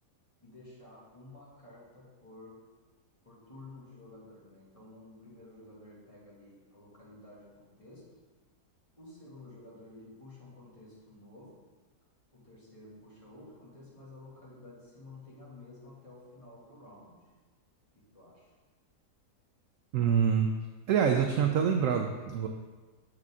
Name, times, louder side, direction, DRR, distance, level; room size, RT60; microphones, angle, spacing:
voice 1, 0.4-2.6 3.2-8.1 9.0-11.6 12.3-17.2 17.9-18.5, left 2 dB, 20° left, -7 dB, 2.1 m, -52 dB
voice 2, 19.9-20.5 20.9-22.5, right 7 dB, 70° right, 4 dB, 0.8 m, -26 dB
7.3 x 6.6 x 3.7 m, 1.3 s
omnidirectional pair, 1.8 m